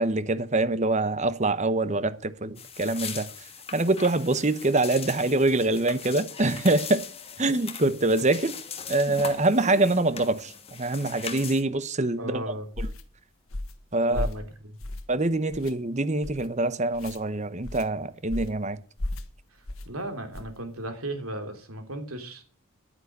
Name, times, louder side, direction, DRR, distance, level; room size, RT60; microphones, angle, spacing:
voice 1, 0.0-3.3 3.7-7.0 7.4-8.6 8.9-12.4 12.8-12.9 13.9-14.3 15.1-18.8, right 2 dB, 35° right, 1.0 m, -25 dB
sound 1, 2.6-11.6, left 6 dB, 30° left, 1.7 m, -40 dB
voice 2, 12.2-12.7 14.1-14.8 19.9-22.4, right 1 dB, 85° right, 3.5 m, -35 dB
sound 2, 12.7-13.0 13.5-13.8 14.1-14.4 14.8-15.2 15.5-15.7 16.2-16.5 16.9-17.2 17.6-17.9 18.3-18.6 19.0-19.3 19.7-19.9 20.3-20.6, left 1 dB, 75° left, 1.6 m, -34 dB
11.5 x 9.6 x 8.1 m
head